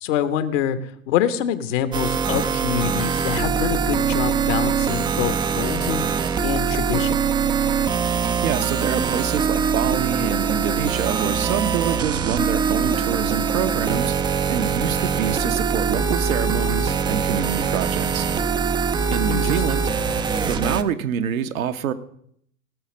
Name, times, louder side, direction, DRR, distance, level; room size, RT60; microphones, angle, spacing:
voice 1, 0.0-6.0 6.4-7.2 19.3-19.6, left 9 dB, 60° left, 11 dB, 1.2 m, -25 dB
sound 1, 1.9-20.8, right 6 dB, 10° right, 0.4 m, -23 dB
voice 2, 8.0-18.3 19.1-19.8 20.4-21.9, right 8 dB, 75° right, 8 dB, 1.0 m, -26 dB
18.0 x 6.5 x 6.2 m, 0.68 s
hypercardioid pair, 90°, 42 cm